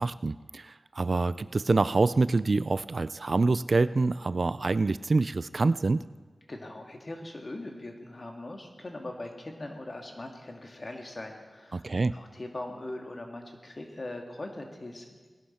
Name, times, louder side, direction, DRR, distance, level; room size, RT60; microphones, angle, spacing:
voice 1, 0.0-6.0 11.7-12.1, right 3 dB, 55° right, 15 dB, 0.3 m, -26 dB
voice 2, 6.5-15.2, left 2 dB, 45° left, 3 dB, 1.9 m, -41 dB
19.0 x 11.0 x 4.3 m, 1.4 s
cardioid pair, 55°, 0 cm